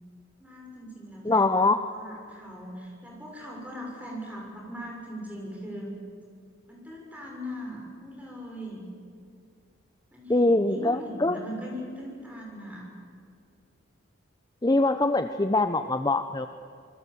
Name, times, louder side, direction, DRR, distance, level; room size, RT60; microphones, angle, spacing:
voice 1, 0.4-5.9 6.7-8.8 10.1-12.9, equal, 5° right, -1 dB, 6.4 m, -40 dB
voice 2, 1.2-1.8 10.3-11.4 14.6-16.5, left 2 dB, 20° left, 9 dB, 0.7 m, -23 dB
26.5 x 21.0 x 8.5 m, 2.3 s
head